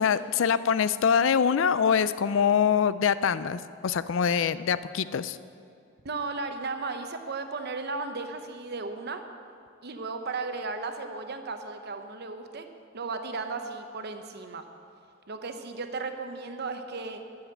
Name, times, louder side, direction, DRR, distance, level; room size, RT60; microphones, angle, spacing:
voice 1, 0.0-5.4, left 7 dB, 70° left, 15 dB, 0.4 m, -24 dB
voice 2, 6.0-9.2 9.8-12.7 12.9-14.6 15.3-17.2, right 3 dB, 55° right, 7 dB, 0.9 m, -35 dB
12.5 x 7.2 x 8.0 m, 2.5 s
head